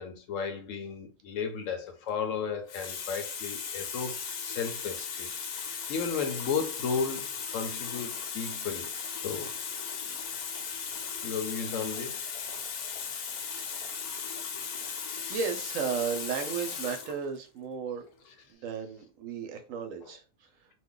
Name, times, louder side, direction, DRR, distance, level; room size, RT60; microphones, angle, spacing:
voice 1, 0.0-4.2 4.4-5.3 5.9-7.3 7.5-8.9 9.2-9.5 11.2-12.3, left 6 dB, 70° left, 0.9 m, -34 dB
Water tap faucet, 1.9-2.1 2.7-17.2 18.1-18.3, left 6 dB, 85° left, 1.2 m, -37 dB
voice 2, 15.3-18.0 18.5-20.7, right 6 dB, 70° right, 0.9 m, -34 dB
2.6 x 2.2 x 3.6 m
omnidirectional pair, 1.5 m